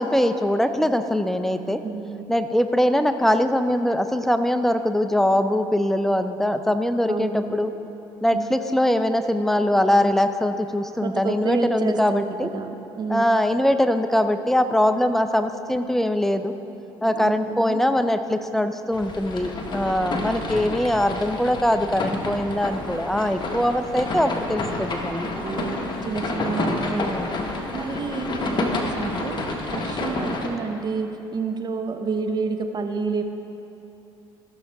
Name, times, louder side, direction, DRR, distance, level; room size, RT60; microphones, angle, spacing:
voice 1, 0.0-1.8 2.3-7.7 8.2-12.5 13.1-16.5 17.0-25.3 26.8-27.3, left 1 dB, 5° left, 9 dB, 0.6 m, -22 dB
voice 2, 1.8-2.4 7.1-7.6 8.3-8.7 11.0-13.3 17.0-17.8 19.8-20.2 25.4-27.2 27.7-33.2, right 4 dB, 40° right, 5 dB, 0.9 m, -29 dB
sound 1, 18.9-30.5, left 2 dB, 40° left, 1.3 m, -29 dB
15.0 x 6.5 x 3.5 m, 2.9 s
supercardioid pair, 70°, 11 cm